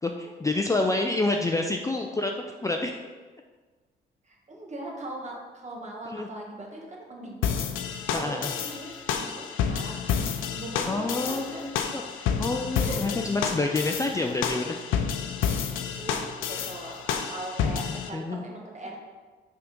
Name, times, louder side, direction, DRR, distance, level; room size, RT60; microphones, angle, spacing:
voice 1, 0.0-3.0 6.1-6.3 8.1-8.5 10.8-12.0 12.4-14.8 17.6-18.5, left 2 dB, 15° left, 2 dB, 0.4 m, -28 dB
voice 2, 4.2-10.0 10.5-11.6 12.8-13.3 15.9-19.0, right 2 dB, 35° right, -1 dB, 1.5 m, -40 dB
sound 1, 7.4-18.1, left 7 dB, 85° left, 0.6 m, -30 dB
5.8 x 3.7 x 5.2 m, 1.4 s
cardioid pair, 90°, 20 cm